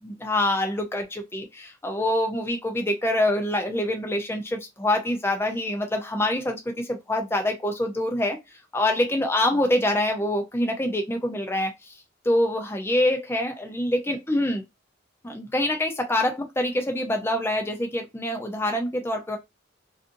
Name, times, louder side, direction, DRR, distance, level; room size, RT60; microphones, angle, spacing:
voice 1, 0.0-8.4 8.7-12.0 12.2-14.6 15.2-19.4, left 1 dB, 10° left, 0.5 m, -25 dB
2.5 x 2.5 x 2.5 m
head